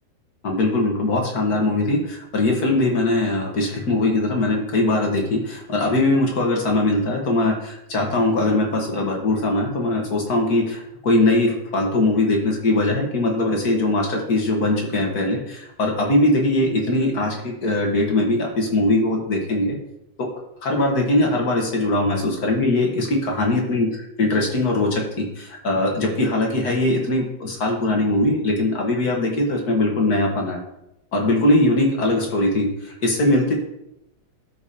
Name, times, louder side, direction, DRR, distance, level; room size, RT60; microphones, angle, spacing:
voice 1, 0.4-19.8 20.2-20.3 20.6-30.6 31.1-33.5, left 2 dB, 55° left, 1 dB, 1.8 m, -21 dB
12.5 x 5.1 x 2.8 m, 0.81 s
omnidirectional pair, 2.2 m